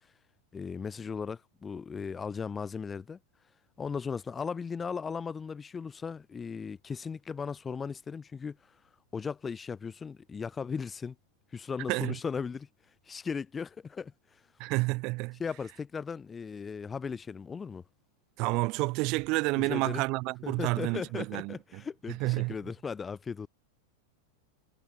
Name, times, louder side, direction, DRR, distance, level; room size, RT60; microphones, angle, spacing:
voice 1, 0.5-3.2 3.8-8.6 9.1-11.1 11.5-12.7 13.1-14.4 15.4-17.8 19.6-20.0 20.4-23.5, left 5 dB, 15° left, 3.5 m, -37 dB
voice 2, 14.6-15.4 18.4-21.8 22.1-22.6, right 25 dB, 40° right, 4.4 m, -30 dB
figure-of-eight pair, 90°, 0 cm